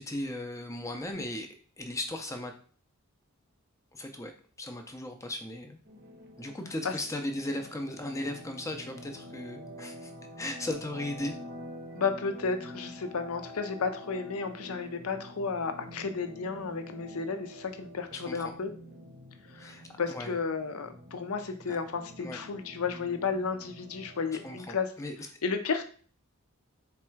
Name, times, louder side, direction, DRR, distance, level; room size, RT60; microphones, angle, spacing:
voice 1, 0.0-1.5 1.8-2.5 3.9-4.3 4.6-5.8 6.4-10.1 10.4-11.4 18.1-18.5 19.6-20.4 21.7-21.8 22.2-22.4 24.4-25.1, left 1 dB, 15° left, 4 dB, 0.4 m, -37 dB
sound 1, 5.8-24.6, equal, 45° right, 0.7 m, -47 dB
voice 2, 11.9-18.7 19.5-24.9 25.4-25.8, left 5 dB, 70° left, 8 dB, 0.6 m, -33 dB
4.2 x 2.3 x 4.4 m, 0.43 s
head